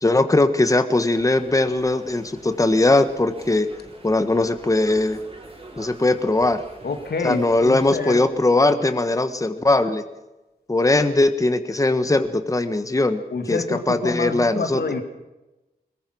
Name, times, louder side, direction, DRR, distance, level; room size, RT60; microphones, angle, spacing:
voice 1, 0.0-3.7 4.0-5.2 5.8-6.6 7.2-10.0 10.7-14.8, left 2 dB, 20° left, 9 dB, 1.4 m, -20 dB
sound 1, 1.1-8.3, right 2 dB, 35° right, 6.0 m, -44 dB
voice 2, 6.8-8.2 13.3-15.0, left 4 dB, 90° left, 6 dB, 2.2 m, -27 dB
22.0 x 21.0 x 6.2 m, 1.0 s
wide cardioid pair, 100°, 16 cm